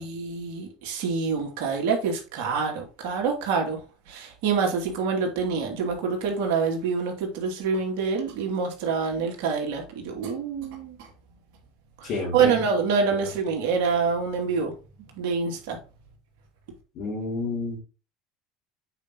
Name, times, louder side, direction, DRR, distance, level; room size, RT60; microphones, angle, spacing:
voice 1, 0.0-3.8 4.1-11.0 12.0-14.7 15.2-15.8, right 5 dB, 75° right, 2.6 m, -26 dB
voice 2, 12.0-12.6 17.0-17.8, left 3 dB, 55° left, 4.1 m, -30 dB
8.7 x 5.2 x 3.0 m
hypercardioid pair, 85°, 0 cm